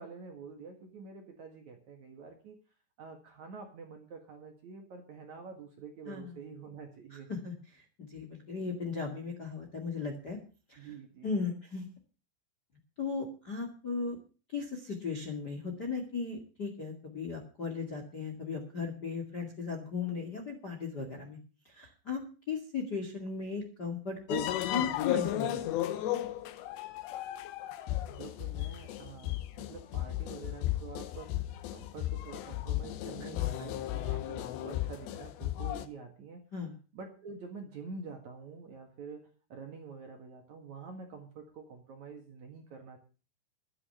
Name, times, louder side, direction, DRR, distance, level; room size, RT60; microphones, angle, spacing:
voice 1, 0.0-2.6 3.0-7.3 8.1-8.3 10.8-11.3 28.0-36.4 36.9-43.0, right 5 dB, 55° right, 4 dB, 2.5 m, -47 dB
voice 2, 6.1-6.4 7.1-10.4 10.7-10.9 11.2-11.9 13.0-14.2 14.5-21.4 21.6-22.2 22.5-25.6 33.2-34.0 36.5-36.7, left 5 dB, 35° left, 3 dB, 1.8 m, -37 dB
sound 1, 24.3-35.9, left 14 dB, 85° left, 3.2 m, -35 dB
12.5 x 9.4 x 6.7 m, 0.36 s
omnidirectional pair, 5.1 m